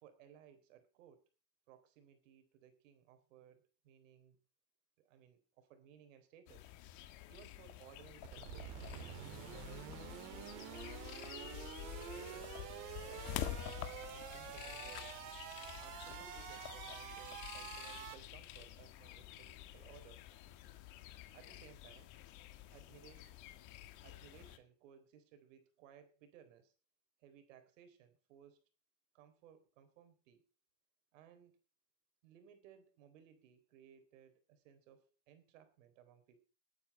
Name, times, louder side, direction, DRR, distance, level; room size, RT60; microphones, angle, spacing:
voice 1, 0.0-1.3 1.7-4.4 5.0-6.7 7.3-8.8 9.1-11.7 12.1-13.4 13.9-15.2 15.8-20.2 21.3-22.1 22.7-23.3 24.0-26.7 27.2-28.6 29.1-30.4 31.1-31.6 32.2-36.4, right 9 dB, 80° right, 9 dB, 3.8 m, -61 dB
sound 1, 6.5-24.6, left 13 dB, 50° left, 1.9 m, -49 dB
sound 2, 8.2-18.1, right 10 dB, 55° right, 2.6 m, -48 dB
20.0 x 9.3 x 4.4 m, 0.35 s
supercardioid pair, 150°, 38 cm